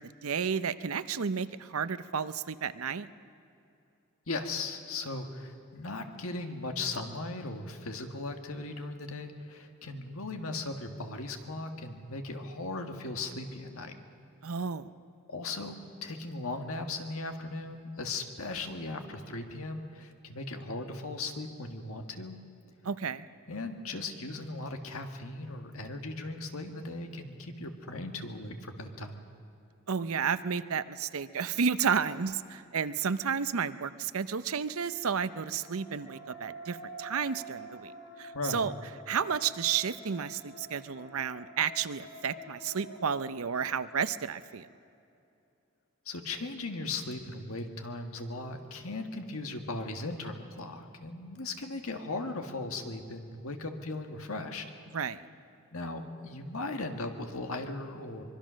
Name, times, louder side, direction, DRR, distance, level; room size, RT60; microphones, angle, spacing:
voice 1, 0.0-3.1 14.4-14.9 22.8-23.3 29.9-37.9 38.2-38.7 39.1-44.7 54.9-55.3, right 6 dB, 85° right, 14 dB, 0.7 m, -32 dB
voice 2, 4.3-13.9 15.3-22.4 23.5-29.3 38.3-38.7 46.1-54.6 55.7-58.2, left 2 dB, 85° left, 5 dB, 1.8 m, -38 dB
sound 1, 35.0-44.2, right 1 dB, 55° left, 3.1 m, -48 dB
24.0 x 22.0 x 6.4 m, 2.6 s
head